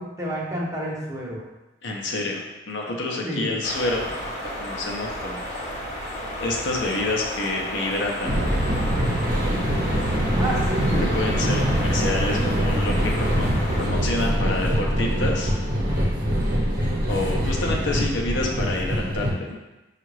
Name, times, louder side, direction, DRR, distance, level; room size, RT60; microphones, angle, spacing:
voice 1, 0.0-1.4 3.2-3.5 10.4-11.1, right 1 dB, 15° right, -4 dB, 0.7 m, -29 dB
voice 2, 1.8-4.2 4.6-5.6 6.4-8.3 11.1-13.5 13.7-15.5 17.1-19.6, left 2 dB, 65° left, -1 dB, 0.7 m, -28 dB
sound 1, 3.6-13.9, equal, 40° left, 1.0 m, -33 dB
sound 2, 8.2-19.3, equal, 50° right, 1.0 m, -23 dB
5.6 x 2.4 x 3.1 m, 1.1 s
head